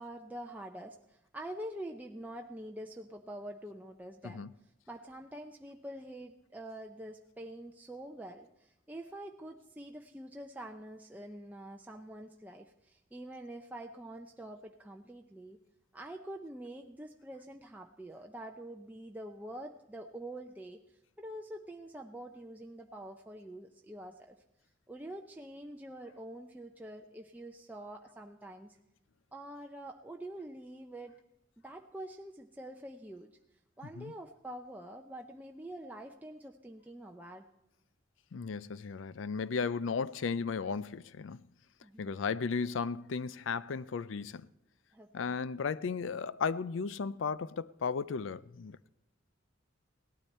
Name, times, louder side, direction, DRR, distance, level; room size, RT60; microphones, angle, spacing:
voice 1, 0.0-4.5 4.9-15.6 15.9-20.8 21.2-24.4 24.9-28.8 29.3-31.2 31.6-33.3 33.8-37.5 41.8-42.1 44.9-45.3, right 1 dB, 10° right, 0.6 m, -46 dB
voice 2, 38.3-41.4 42.0-44.5 45.1-48.9, left 5 dB, 80° left, 0.5 m, -35 dB
17.5 x 12.5 x 4.2 m
head